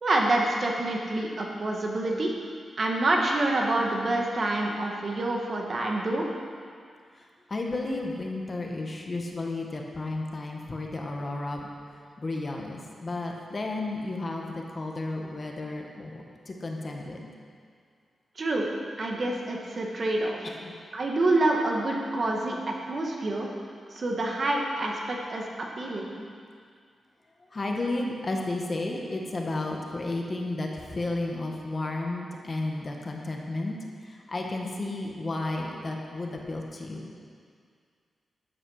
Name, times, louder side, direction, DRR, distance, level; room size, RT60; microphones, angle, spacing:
voice 1, 0.0-2.3 2.8-6.2 18.4-18.7 19.0-20.5 20.9-23.5 23.9-26.2, right 2 dB, 40° right, 0 dB, 1.7 m, -27 dB
voice 2, 7.2-17.3 20.4-20.7 27.5-33.8 34.0-37.1, left 2 dB, 30° left, 0 dB, 1.3 m, -33 dB
12.5 x 8.8 x 6.4 m, 2.1 s
wide cardioid pair, 150°, 0 cm